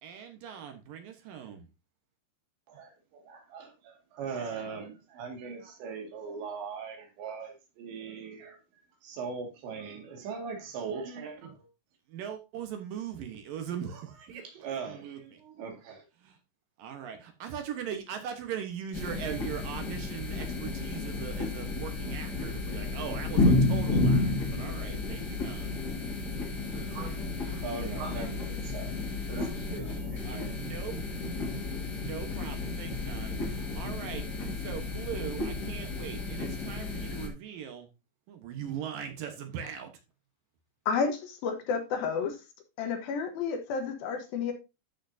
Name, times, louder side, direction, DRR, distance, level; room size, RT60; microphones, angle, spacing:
voice 1, 0.0-1.7 12.1-15.4 16.2-16.4 16.8-25.8 30.2-31.0 32.0-34.2 34.6-37.9 38.3-39.9, right 8 dB, 65° right, 2.5 m, -40 dB
voice 2, 2.7-8.6 9.0-11.7 14.3-16.1 26.7-29.0 29.3-30.6, right 5 dB, 90° right, 4.4 m, -40 dB
sound 1, 18.9-37.3, left 2 dB, 35° left, 1.7 m, -31 dB
voice 3, 40.9-42.4 42.8-44.5, left 5 dB, 70° left, 2.7 m, -31 dB
13.0 x 5.9 x 2.7 m
omnidirectional pair, 4.9 m